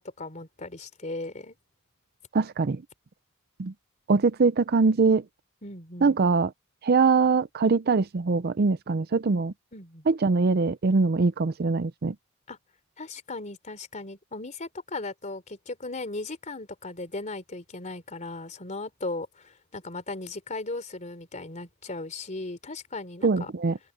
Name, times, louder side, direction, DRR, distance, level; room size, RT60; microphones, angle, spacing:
voice 1, 0.0-1.6 5.6-6.2 9.7-10.1 12.5-12.6 13.0-23.5, left 2 dB, 35° left, 3.5 m, -37 dB
voice 2, 2.3-2.8 3.6-3.7 4.1-5.2 6.0-6.5 6.8-9.5 10.1-12.1 23.2-23.8, right 4 dB, 50° right, 0.5 m, -22 dB
open air
head